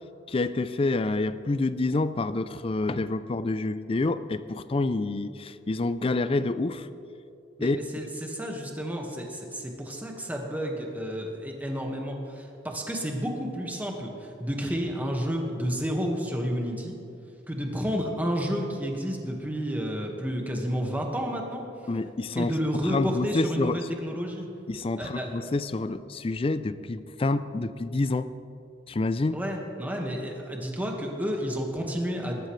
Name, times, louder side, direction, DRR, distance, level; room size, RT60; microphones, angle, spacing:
voice 1, 0.3-6.9 7.6-7.8 21.9-22.5 22.8-23.8 24.7-28.3 28.9-29.4, left 2 dB, 30° left, 13 dB, 0.4 m, -28 dB
voice 2, 7.6-17.0 17.5-21.7 22.3-24.5 25.0-25.5 29.3-32.5, equal, 10° right, 0 dB, 1.6 m, -31 dB
21.0 x 12.0 x 3.3 m, 2.6 s
head